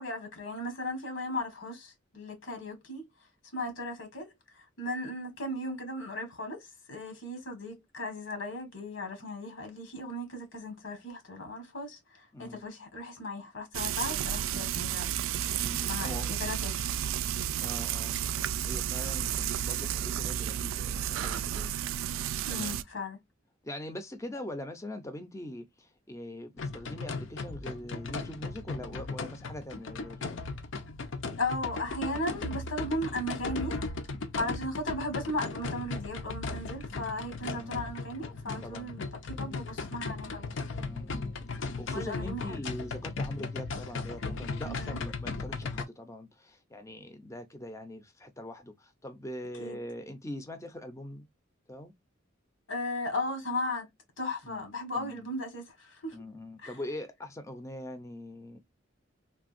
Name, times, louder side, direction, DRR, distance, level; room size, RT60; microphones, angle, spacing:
voice 1, 0.0-3.0 3.5-4.3 4.8-15.2 15.9-17.0 22.4-23.2 31.4-33.8 34.4-40.7 41.9-42.7 44.6-45.0 49.6-49.8 52.7-53.9 54.2-56.2 56.6-56.7, left 1 dB, 85° left, 1.4 m, -36 dB
Frying (food), 13.7-22.8, right 10 dB, 90° right, 0.3 m, -32 dB
voice 2, 15.5-16.3 17.6-21.7 22.2-22.8 23.6-30.6 37.5-37.8 38.6-38.9 40.9-51.3 51.7-51.9 54.4-54.7 54.9-55.3 56.1-58.6, left 1 dB, 15° left, 0.5 m, -42 dB
sound 1, 26.6-45.8, left 3 dB, 70° left, 0.6 m, -37 dB
3.5 x 2.3 x 2.5 m
head